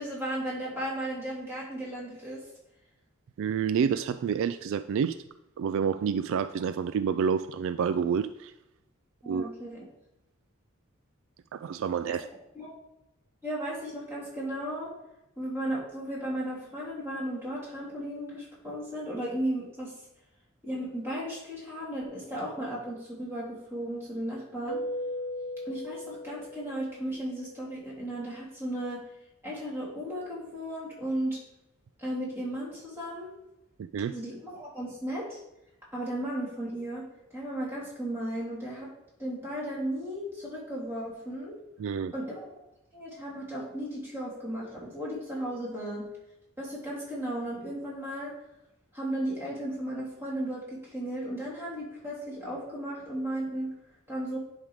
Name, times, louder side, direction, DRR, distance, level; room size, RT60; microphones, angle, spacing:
voice 1, 0.0-2.4 9.2-9.8 12.1-12.2 12.5-12.7 13.4-14.9 15.4-19.9 20.6-24.8 25.6-29.0 29.4-31.4 32.0-33.3 34.1-35.4 35.9-37.1 37.3-38.9 39.2-41.5 42.1-42.6 42.9-46.0 46.6-48.3 48.9-53.7 54.1-54.4, right 1 dB, 10° right, -7 dB, 3.1 m, -35 dB
voice 2, 3.4-5.2 5.6-8.5 9.3-9.5 11.5-12.3 33.8-34.1 41.8-42.1, right 7 dB, 65° right, 12 dB, 0.3 m, -28 dB
Keyboard (musical), 24.7-27.2, left 1 dB, 65° left, 0.6 m, -37 dB
10.5 x 3.7 x 4.8 m, 0.90 s
head